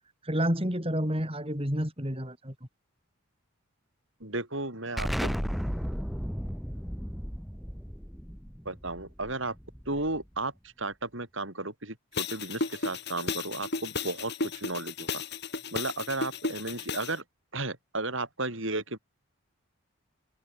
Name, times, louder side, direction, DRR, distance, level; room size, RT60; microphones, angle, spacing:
voice 1, 0.2-2.5, equal, 25° right, 5.9 m, -29 dB
voice 2, 4.2-5.3 8.6-9.5 9.9-15.2 15.7-17.2 17.5-19.0, right 2 dB, 65° right, 6.3 m, -34 dB
Explosion, 5.0-10.4, equal, ahead, 6.7 m, -34 dB
sound 1, 12.1-17.1, left 3 dB, 50° left, 3.6 m, -34 dB
head